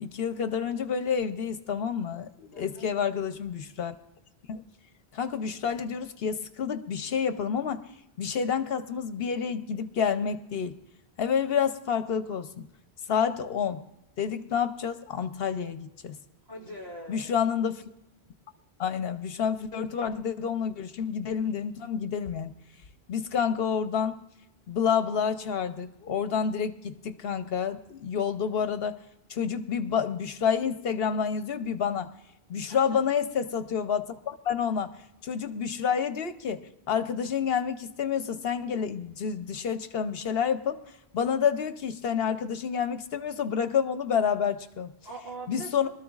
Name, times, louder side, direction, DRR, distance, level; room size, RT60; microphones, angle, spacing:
voice 1, 0.0-3.9 4.5-4.6 5.1-7.8 8.2-10.8 11.2-12.7 13.1-13.8 14.2-16.1 17.1-17.9 18.8-22.5 23.1-24.2 24.7-29.0 29.3-32.1 32.5-40.8 41.1-44.9 45.5-45.9, left 7 dB, 70° left, 10 dB, 0.9 m, -29 dB
voice 2, 2.5-2.9 16.5-17.3 32.7-33.0 45.0-45.9, right 1 dB, 45° right, -3 dB, 3.5 m, -42 dB
24.5 x 13.0 x 2.4 m, 0.89 s
omnidirectional pair, 1.1 m